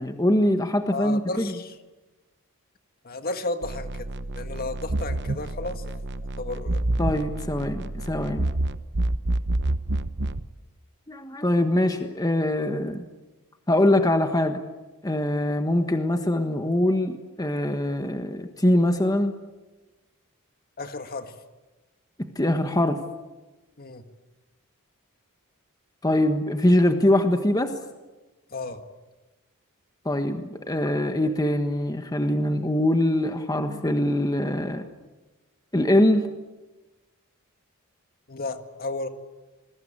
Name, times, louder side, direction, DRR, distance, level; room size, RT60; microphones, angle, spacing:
voice 1, 0.0-1.5 7.0-8.5 11.1-13.0 13.7-14.6 15.0-19.3 22.3-23.0 26.0-27.7 30.0-34.9 35.7-36.3, left 1 dB, 15° left, 6 dB, 1.4 m, -23 dB
voice 2, 0.9-1.8 3.0-4.1 4.4-6.8 20.8-21.4 23.8-24.0 28.5-28.8 38.3-39.1, left 2 dB, 45° left, 8 dB, 1.8 m, -33 dB
sound 1, 3.6-10.5, right 2 dB, 50° right, 1.0 m, -28 dB
27.0 x 22.0 x 8.9 m, 1.2 s
head